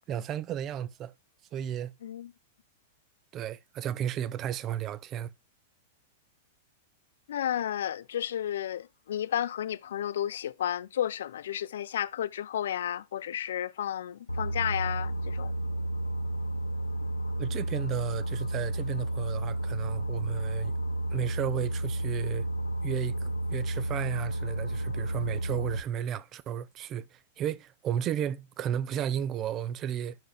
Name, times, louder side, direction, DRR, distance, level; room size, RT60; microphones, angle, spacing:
voice 1, 0.1-1.1 1.5-1.9 3.3-5.3 17.4-20.7 21.1-22.5 22.8-30.2, right 9 dB, 30° right, 0.6 m, -33 dB
voice 2, 2.0-2.3 7.3-15.5, left 10 dB, 60° left, 0.5 m, -32 dB
Boat Water vehicle, 14.3-25.8, right 1 dB, 80° left, 0.8 m, -32 dB
10.5 x 6.3 x 2.3 m
figure-of-eight pair, 95°, 0 cm